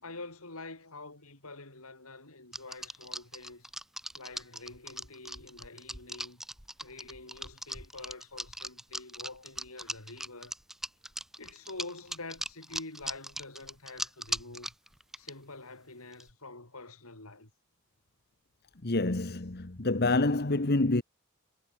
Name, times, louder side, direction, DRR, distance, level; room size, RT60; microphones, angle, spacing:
voice 1, 0.0-3.7 4.1-6.4 6.8-10.5 11.4-14.7 15.2-17.5, left 2 dB, 75° left, 5.5 m, -46 dB
sound 1, 2.5-15.3 16.1-16.3, right 1 dB, ahead, 0.5 m, -39 dB
voice 2, 18.8-21.0, left 2 dB, 45° left, 1.3 m, -27 dB
head